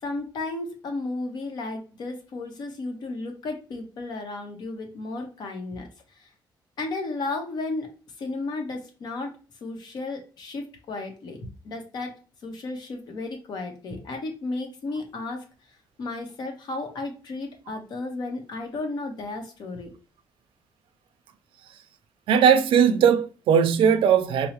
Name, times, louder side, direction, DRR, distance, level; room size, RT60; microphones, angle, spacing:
voice 1, 0.0-6.3 6.8-7.9 8.2-9.3 9.6-12.2 12.4-15.4 16.0-19.9, left 2 dB, 55° left, 0.8 m, -33 dB
voice 2, 22.3-24.5, right 7 dB, 85° right, 0.4 m, -19 dB
4.3 x 2.0 x 2.9 m
wide cardioid pair, 175°, 9 cm